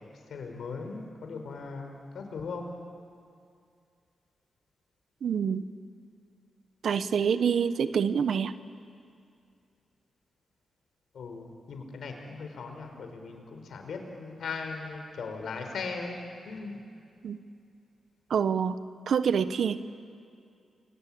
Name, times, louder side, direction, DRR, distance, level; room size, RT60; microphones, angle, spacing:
voice 1, 0.0-2.7 11.1-16.8, left 4 dB, 75° left, 4 dB, 4.7 m, -39 dB
voice 2, 5.2-5.6 6.8-8.5 17.2-17.4 18.3-18.8 19.1-19.9, right 7 dB, 70° right, 13 dB, 1.1 m, -26 dB
29.5 x 23.0 x 8.8 m, 2.4 s
supercardioid pair, 45°, 0 cm